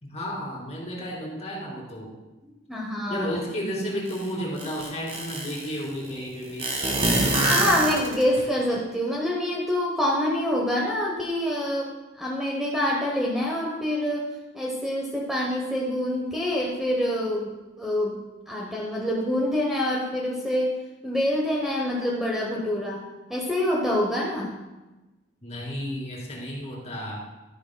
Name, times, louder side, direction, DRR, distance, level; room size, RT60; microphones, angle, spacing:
voice 1, 0.0-2.1 3.1-6.7 25.4-27.2, equal, 35° left, -3 dB, 2.5 m, -32 dB
voice 2, 2.7-3.4 7.5-14.3 14.5-18.2 18.5-20.8 21.0-24.5, left 1 dB, ahead, -3 dB, 0.8 m, -26 dB
sound 1, 4.1-4.2 4.6-5.7 6.6-8.4, right 2 dB, 30° right, 1.5 m, -24 dB
12.0 x 10.0 x 2.2 m, 1.1 s
head